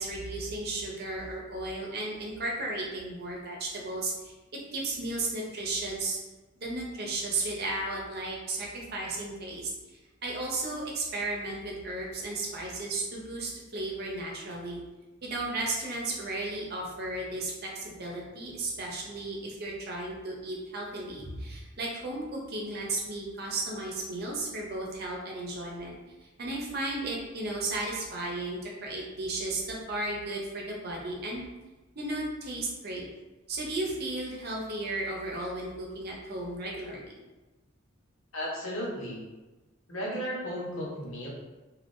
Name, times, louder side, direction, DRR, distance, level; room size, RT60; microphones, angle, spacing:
voice 1, 0.0-4.3 4.7-6.2 6.6-9.7 10.2-14.8 15.2-25.9 26.4-31.4 32.0-33.0 33.5-37.0, right 2 dB, 50° right, -2 dB, 0.7 m, -34 dB
voice 2, 38.3-39.2 39.9-41.3, equal, 90° left, -5 dB, 1.0 m, -34 dB
3.5 x 2.4 x 2.6 m, 1.2 s
head